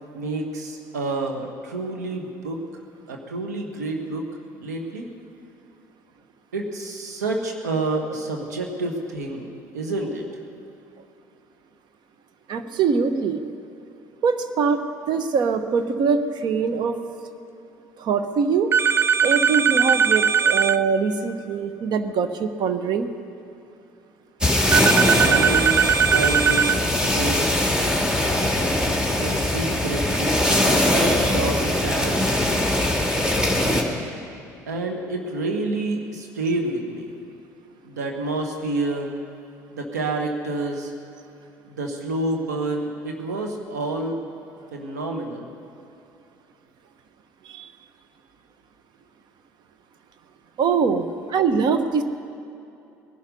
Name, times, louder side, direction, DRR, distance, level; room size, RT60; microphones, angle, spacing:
voice 1, 0.1-2.6 3.1-4.2 4.6-5.1 6.5-10.3 25.2-25.8 26.1-26.8 27.0-27.5 29.1-32.2 34.7-37.1 37.8-39.1 39.7-40.9 41.7-44.2 44.7-45.5, right 2 dB, 90° right, 2 dB, 1.6 m, -28 dB
voice 2, 12.5-13.4 14.2-17.0 18.0-18.7 19.2-23.1 31.0-31.3 47.5-47.7 50.6-52.0, right 5 dB, 55° right, 10 dB, 1.1 m, -23 dB
sound 1, 18.7-20.8 24.7-26.8, right 7 dB, 25° right, 0.5 m, -19 dB
sound 2, 24.4-33.8, left 1 dB, 10° right, 2.3 m, -21 dB
19.5 x 11.5 x 5.4 m, 2.8 s
hypercardioid pair, 60°, 9 cm